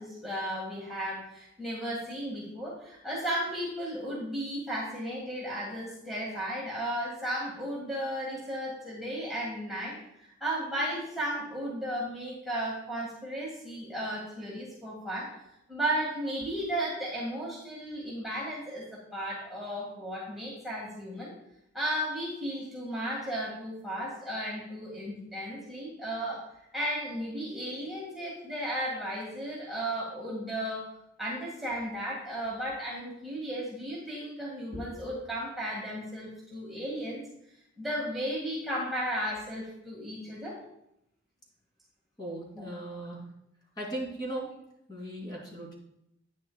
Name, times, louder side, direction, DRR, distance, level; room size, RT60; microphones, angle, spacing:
voice 1, 0.0-15.3 15.7-21.3 21.7-26.4 26.7-30.9 31.2-37.2 37.8-40.6 42.6-42.7, equal, ahead, -6 dB, 1.9 m, -34 dB
voice 2, 42.2-43.2 43.8-44.5 44.9-45.7, right 1 dB, 25° left, -4 dB, 2.8 m, -37 dB
11.0 x 9.4 x 2.3 m, 0.78 s
head